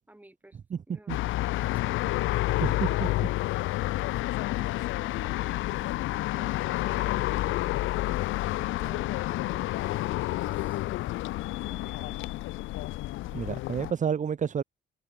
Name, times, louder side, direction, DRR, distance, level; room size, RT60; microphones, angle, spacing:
voice 1, 0.1-0.6 0.9-1.1 1.4-2.2 4.5-5.9 6.3-8.0 8.5-11.3 11.5-12.2, right 1 dB, 10° right, 3.5 m, -53 dB
sound 1, 1.1-13.9, left 17 dB, 85° left, 0.6 m, -29 dB
voice 2, 2.6-3.3 13.3-14.6, right 7 dB, 40° right, 0.9 m, -30 dB
cardioid pair, 90°, 20 cm